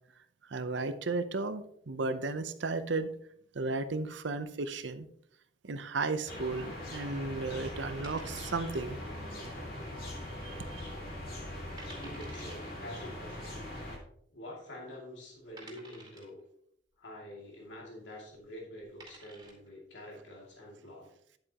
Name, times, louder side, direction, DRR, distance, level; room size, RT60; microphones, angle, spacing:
voice 1, 0.5-3.1 3.5-5.1 5.6-9.0 10.4-10.8, right 3 dB, 70° right, 11 dB, 0.7 m, -34 dB
sound 1, 6.3-14.0, left 1 dB, 55° left, 2.5 m, -41 dB
sound 2, 8.0-9.0 9.3-9.4 10.0-10.4 10.7-10.8 11.4-11.5 11.8-12.7 13.8-13.9 14.6-14.7 15.6-16.4 18.2-18.4 18.8-19.7, right 3 dB, 20° right, 2.3 m, -52 dB
voice 2, 11.8-13.6 14.3-16.4 17.0-21.1, left 1 dB, 75° left, -2 dB, 2.5 m, -47 dB
10.5 x 7.8 x 2.9 m, 0.69 s
head